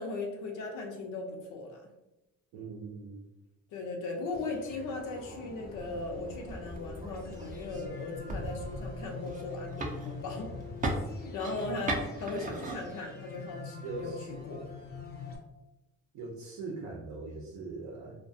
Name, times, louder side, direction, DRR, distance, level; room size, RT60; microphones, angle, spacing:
voice 1, 0.0-1.8 3.7-10.5 11.3-14.1 14.4-14.6, left 3 dB, 85° left, 2 dB, 0.6 m, -38 dB
voice 2, 2.5-3.2 13.8-14.3 16.1-18.2, right 3 dB, 75° right, -1 dB, 0.6 m, -41 dB
sound 1, 4.3-15.4, left 3 dB, 35° left, 0.5 m, -44 dB
sound 2, 5.7-13.6, right 2 dB, 25° right, 0.4 m, -39 dB
2.3 x 2.2 x 2.6 m, 0.96 s
cardioid pair, 90°, 30 cm